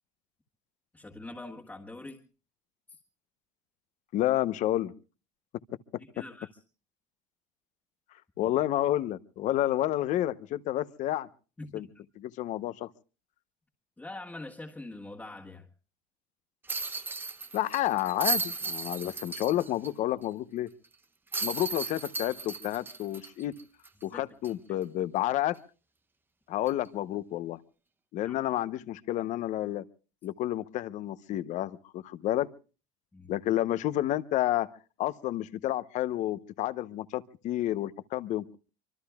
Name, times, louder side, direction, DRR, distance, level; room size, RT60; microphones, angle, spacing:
voice 1, 0.9-2.3 2.9-3.0 6.0-6.5 11.6-11.9 14.0-15.7 24.1-24.2 24.7-24.8 28.2-28.4 33.1-33.3, left 2 dB, 10° left, 1.6 m, -44 dB
voice 2, 4.1-4.9 8.4-11.3 11.7-11.9 12.2-12.9 17.5-20.7 21.4-23.5 24.0-25.6 26.5-27.6 28.1-29.8 30.2-32.5 33.3-34.7 35.0-38.6, left 13 dB, 55° left, 0.9 m, -30 dB
sound 1, 16.7-19.9 20.2-20.3 21.3-24.0 24.4-24.5 26.7-26.9, right 3 dB, 15° right, 0.8 m, -35 dB
25.0 x 25.0 x 2.3 m
cardioid pair, 130°, 15 cm